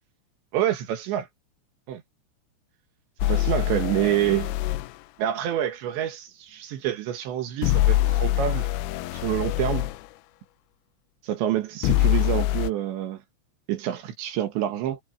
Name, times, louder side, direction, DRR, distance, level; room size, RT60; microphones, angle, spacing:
voice 1, 0.5-1.3 1.9-2.0 3.3-4.5 5.2-8.7 9.1-9.9 11.2-13.2 13.7-15.0, right 12 dB, 70° right, 3.4 m, -27 dB
sound 1, 3.2-4.9 7.6-10.0 11.8-12.7, left 15 dB, 85° left, 3.6 m, -24 dB
omnidirectional pair, 6.0 m